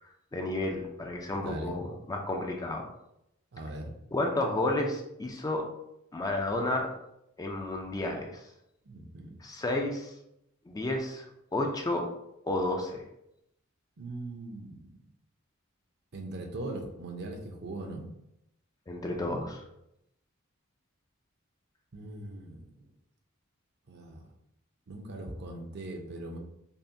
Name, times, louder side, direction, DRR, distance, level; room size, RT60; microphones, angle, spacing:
voice 1, 0.0-2.9 4.1-5.7 6.1-6.9 7.4-8.4 9.4-10.1 10.7-11.3 11.5-12.1 12.4-13.0 18.9-19.6, left 1 dB, 20° left, 2 dB, 0.4 m, -31 dB
voice 2, 1.3-1.7 3.5-3.9 8.9-9.3 14.0-14.9 16.1-18.1 21.9-22.9 23.9-24.2 24.9-26.4, right 2 dB, 55° right, 2 dB, 0.6 m, -40 dB
5.4 x 2.1 x 2.6 m, 0.81 s
head